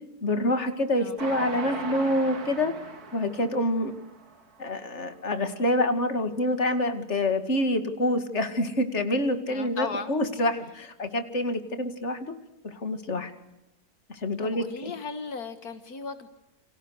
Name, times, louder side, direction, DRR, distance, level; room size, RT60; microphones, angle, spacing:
voice 1, 0.2-2.7 3.1-3.9 4.6-12.3 12.6-13.3 14.1-14.9, left 1 dB, 45° left, 8 dB, 2.6 m, -27 dB
Train, 1.2-4.6 5.1-5.2 5.5-5.6, right 4 dB, 75° right, 2.9 m, -39 dB
voice 2, 9.5-10.2 14.4-16.3, left 4 dB, 75° left, 9 dB, 2.1 m, -36 dB
29.5 x 27.5 x 6.5 m, 0.92 s
omnidirectional pair, 1.6 m